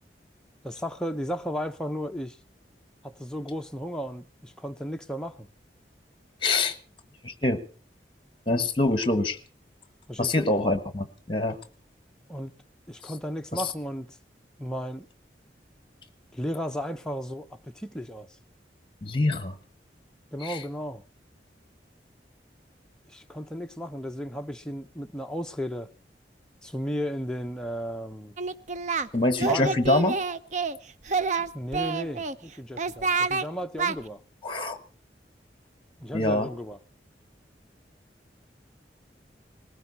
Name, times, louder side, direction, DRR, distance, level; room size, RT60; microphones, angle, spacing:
voice 1, 0.6-2.4 3.0-5.5 10.1-10.5 12.3-12.5 12.9-14.2 14.6-15.1 16.3-18.3 20.3-21.0 23.1-25.9 26.6-28.3 29.4-29.8 31.4-34.2 36.0-36.8, equal, 5° left, 0.7 m, -34 dB
voice 2, 6.4-6.8 7.2-7.6 8.5-9.4 10.2-11.6 13.5-13.6 19.0-19.5 20.4-20.6 29.1-30.1 34.4-34.8 36.1-36.5, left 2 dB, 30° left, 1.5 m, -25 dB
Singing, 28.4-29.1 29.4-30.8 31.1-32.3 32.8-33.5 33.8-34.0, right 4 dB, 45° right, 0.7 m, -27 dB
19.5 x 16.0 x 4.1 m
head